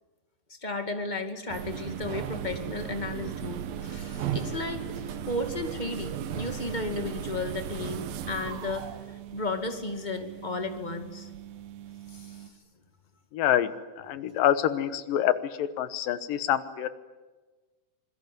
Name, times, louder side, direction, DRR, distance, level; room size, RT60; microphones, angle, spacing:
voice 1, 0.5-4.9 5.3-8.9 9.3-11.3 12.1-12.4, left 2 dB, 15° left, 6 dB, 1.7 m, -34 dB
sound 1, 1.5-12.5, right 9 dB, 90° right, 3.2 m, -37 dB
voice 2, 13.3-13.7 14.0-15.3 15.6-16.9, left 11 dB, 80° left, 13 dB, 2.8 m, -26 dB
26.5 x 21.0 x 9.3 m, 1.3 s
omnidirectional pair, 4.1 m